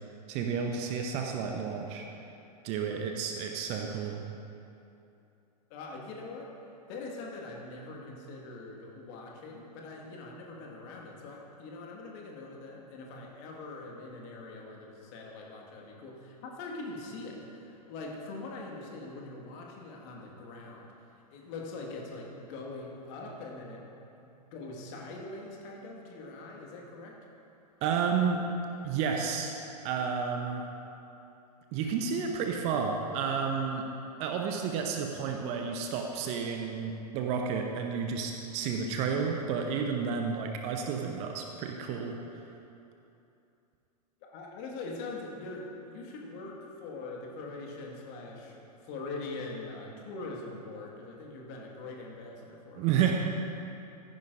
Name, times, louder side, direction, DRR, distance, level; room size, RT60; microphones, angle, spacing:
voice 1, 0.3-2.0 2.6-4.2 27.8-28.5 28.8-29.5 29.8-30.6 31.7-33.9 34.2-42.2 52.8-53.1, right 6 dB, 30° right, 2 dB, 0.8 m, -31 dB
voice 2, 5.7-6.5 6.9-20.9 21.3-23.8 24.2-27.2 44.3-52.9, left 3 dB, 40° left, -1 dB, 1.7 m, -42 dB
14.0 x 10.5 x 2.6 m, 2.8 s
figure-of-eight pair, 100°, 21 cm